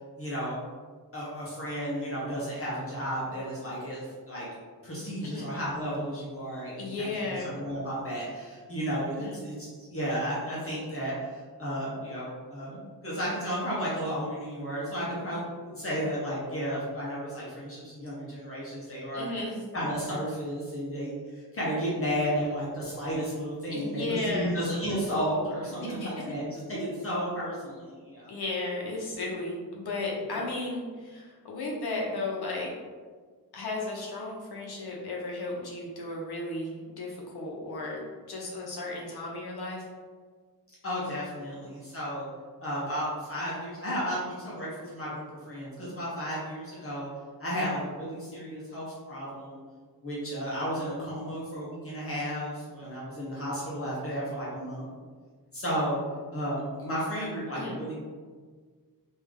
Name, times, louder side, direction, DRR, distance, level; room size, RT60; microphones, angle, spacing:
voice 1, 0.1-0.6 1.1-4.5 4.8-19.3 19.7-28.4 40.8-42.3 42.6-47.1 47.4-49.6 50.0-54.9 55.5-56.0 56.3-57.9, equal, 35° left, -7 dB, 0.9 m, -33 dB
voice 2, 6.8-7.4 9.2-9.4 15.9-16.0 19.1-19.7 23.7-24.6 25.8-26.3 28.3-32.7 33.5-39.8 57.5-57.8, left 2 dB, 75° left, -2 dB, 0.9 m, -34 dB
3.3 x 2.7 x 3.5 m, 1.5 s
wide cardioid pair, 145°, 38 cm